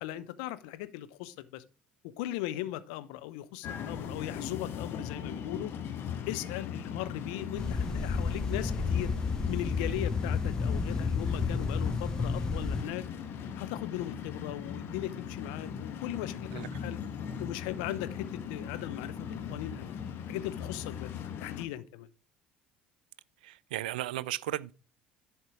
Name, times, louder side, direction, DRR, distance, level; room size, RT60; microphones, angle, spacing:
voice 1, 0.0-1.6 2.0-5.7 6.3-9.1 9.5-13.0 13.6-16.5 16.8-17.0 17.4-19.9 20.2-21.1 21.4-22.1, left 14 dB, 65° left, 0.6 m, -38 dB
sound 1, 3.6-21.7, left 7 dB, 50° left, 1.2 m, -39 dB
sound 2, 7.6-12.8, left 4 dB, 15° left, 1.0 m, -31 dB
voice 2, 23.4-24.7, right 15 dB, 75° right, 0.3 m, -35 dB
10.5 x 4.5 x 4.8 m
figure-of-eight pair, 60°, 5 cm